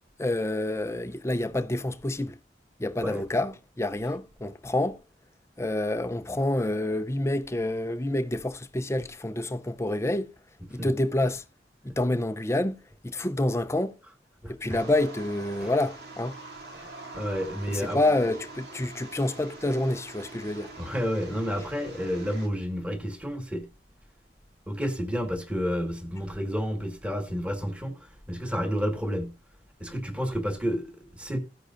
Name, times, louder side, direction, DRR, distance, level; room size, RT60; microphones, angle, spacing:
voice 1, 0.2-2.3 2.8-5.0 5.6-10.3 10.7-11.4 11.8-14.0 14.5-16.3 17.7-20.7, left 1 dB, 15° left, 0.6 m, -28 dB
voice 2, 14.4-14.8 15.6-15.7 16.7-18.0 20.8-23.7 24.7-29.3 29.8-31.4, equal, 5° right, 1.7 m, -30 dB
sound 1, 14.7-22.5, right 3 dB, 65° right, 2.8 m, -44 dB
14.5 x 10.0 x 2.6 m
head